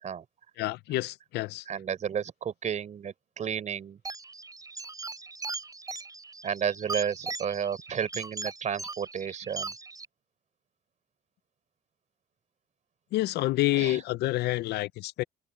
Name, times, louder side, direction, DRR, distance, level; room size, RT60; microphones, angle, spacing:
voice 1, 0.6-1.6 13.1-15.2, left 17 dB, 75° left, 0.6 m, -28 dB
voice 2, 1.7-4.0 6.4-9.7 13.7-14.0, right 8 dB, 45° right, 4.1 m, -32 dB
Computer-bleep-Tanya v, 4.0-10.1, right 3 dB, 20° right, 6.5 m, -39 dB
cardioid pair, 110°, 17 cm